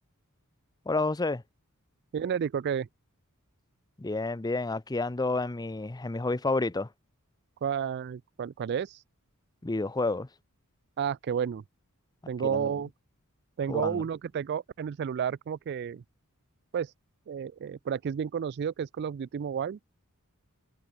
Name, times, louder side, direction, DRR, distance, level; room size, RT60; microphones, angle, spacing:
voice 1, 0.9-1.4 4.0-6.9 9.6-10.3 12.4-12.7 13.7-14.0, left 2 dB, 20° left, 0.6 m, -30 dB
voice 2, 2.1-2.9 7.6-9.0 11.0-11.6 12.3-12.9 13.6-16.0 16.7-16.9 17.3-19.8, right 7 dB, 50° right, 0.3 m, -31 dB
head